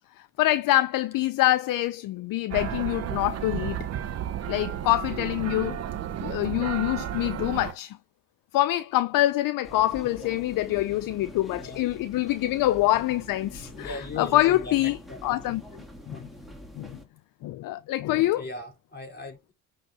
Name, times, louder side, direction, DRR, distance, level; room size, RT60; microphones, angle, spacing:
voice 1, 0.4-3.9 4.5-5.8 6.2-8.0 8.5-15.0 15.2-15.6 16.1-16.2 16.8-17.0 17.4-18.4, left 15 dB, 60° left, 0.6 m, -25 dB
sound 1, 2.5-7.7, right 10 dB, 40° right, 0.9 m, -32 dB
sound 2, 9.6-17.0, equal, ahead, 2.5 m, -45 dB
voice 2, 13.7-15.4 16.1-16.3 18.3-19.5, left 3 dB, 25° left, 4.5 m, -39 dB
9.3 x 3.7 x 6.7 m
cardioid pair, 100°, 37 cm